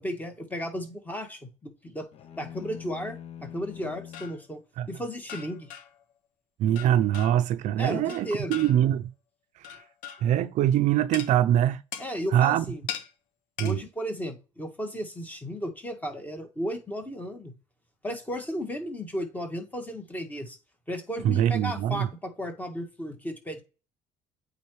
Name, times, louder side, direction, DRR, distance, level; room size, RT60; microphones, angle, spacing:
voice 1, 0.0-2.1 2.4-4.6 4.9-5.7 7.8-8.5 12.0-12.8 13.6-17.5 18.0-20.6 20.9-23.6, equal, 10° left, 1.6 m, -34 dB
sound 1, 2.1-4.4, left 9 dB, 50° left, 0.7 m, -43 dB
sound 2, 3.8-4.4 5.3-6.0 6.8-7.5 8.1-8.9 9.6-10.4 11.1-11.3 11.9-12.2 12.9-13.1 13.6-13.8, left 9 dB, 90° left, 1.1 m, -40 dB
voice 2, 6.6-9.1 9.6-9.7 10.2-11.8 12.3-12.7 13.6-13.8 21.2-22.1, right 11 dB, 60° right, 0.5 m, -23 dB
8.4 x 3.9 x 3.2 m
cardioid pair, 130°, 14 cm